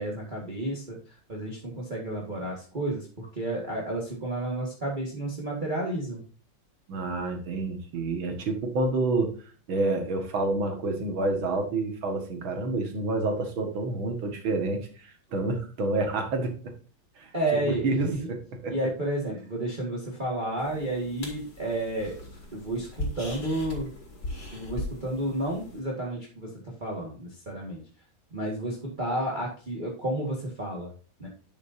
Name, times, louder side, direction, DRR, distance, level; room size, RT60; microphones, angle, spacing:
voice 1, 0.0-6.2 17.3-18.2 18.7-22.2 22.5-23.9 24.5-26.5 26.8-27.8 28.3-30.9 31.2-31.3, right 1 dB, 25° right, -2 dB, 1.9 m, -31 dB
voice 2, 6.9-9.3 9.7-16.7 17.2-17.3 17.6-18.8, right 2 dB, 80° right, 4 dB, 2.6 m, -28 dB
sound 1, 20.6-25.8, left 1 dB, 60° left, 3.1 m, -39 dB
11.5 x 6.6 x 2.7 m, 0.39 s
omnidirectional pair, 2.2 m